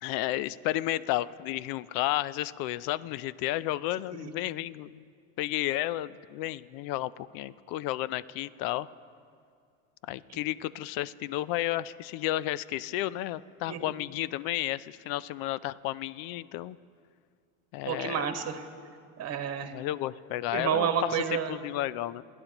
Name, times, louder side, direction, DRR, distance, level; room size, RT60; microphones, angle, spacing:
voice 1, 0.0-5.0 5.4-8.9 10.1-16.8 17.7-18.2 19.7-21.2 21.5-22.2, left 15 dB, 60° left, 19 dB, 0.5 m, -32 dB
voice 2, 17.9-18.6 19.2-19.7 20.5-21.5, right 8 dB, 40° right, 6 dB, 1.5 m, -30 dB
28.5 x 11.0 x 3.0 m, 2.2 s
supercardioid pair, 100°, 41 cm